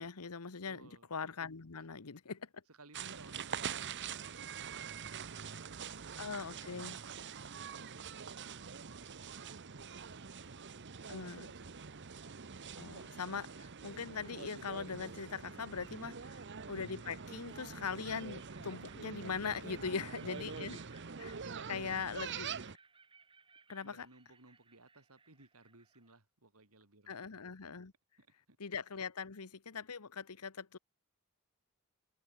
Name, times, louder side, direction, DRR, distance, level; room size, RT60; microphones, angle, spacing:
voice 1, 0.0-2.6 6.2-7.0 11.1-11.5 12.8-16.1 16.7-20.8 21.2-21.3 21.7-22.5 23.7-24.1 27.1-27.9 28.6-30.8, left 5 dB, 90° left, 1.1 m, -41 dB
voice 2, 0.6-1.1 2.7-9.4 9.8-10.4 10.8-12.2 16.0-16.3 19.8-20.8 21.3-21.9 23.8-27.2 28.2-28.6, right 2 dB, 75° right, 3.9 m, -60 dB
sound 1, 2.9-22.8, right 6 dB, 55° right, 1.0 m, -45 dB
sound 2, 15.7-26.2, right 4 dB, 25° right, 4.2 m, -66 dB
head